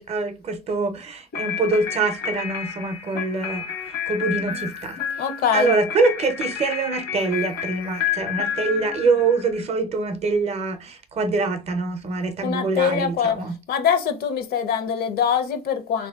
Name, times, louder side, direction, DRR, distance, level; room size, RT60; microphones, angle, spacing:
voice 1, 0.0-3.6 4.1-5.0 5.5-13.6, right 3 dB, 40° right, 0.5 m, -24 dB
sound 1, 1.3-9.6, left 9 dB, 90° left, 1.1 m, -30 dB
voice 2, 5.2-5.7 12.4-16.1, left 7 dB, 65° left, 0.6 m, -23 dB
3.1 x 2.6 x 2.2 m
cardioid pair, 110°, 17 cm